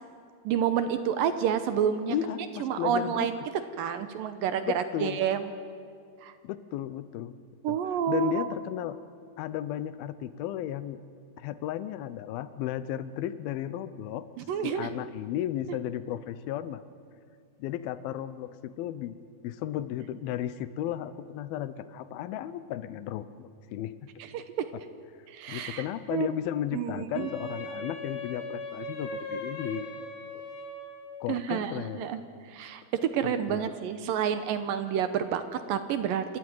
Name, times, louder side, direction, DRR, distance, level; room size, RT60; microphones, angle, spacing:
voice 1, 0.5-2.2 2.6-3.4 3.8-5.5 6.2-6.3 7.6-8.5 14.4-14.9 24.3-24.4 25.3-25.8 26.1-26.3 26.7-27.3 31.3-32.2 32.5-36.4, right 8 dB, 75° right, 10 dB, 2.3 m, -29 dB
voice 2, 2.1-3.3 4.7-5.2 6.4-7.3 7.7-7.8 8.1-9.0 9.4-11.0 11.4-14.3 14.6-16.8 17.6-19.2 19.4-23.9 25.5-29.9 31.2-32.1 33.2-33.7, left 11 dB, 75° left, 14 dB, 2.6 m, -34 dB
Wind instrument woodwind instrument, 27.1-31.2, left 1 dB, 60° left, 3.6 m, -39 dB
28.0 x 13.5 x 9.5 m, 2.2 s
omnidirectional pair, 4.6 m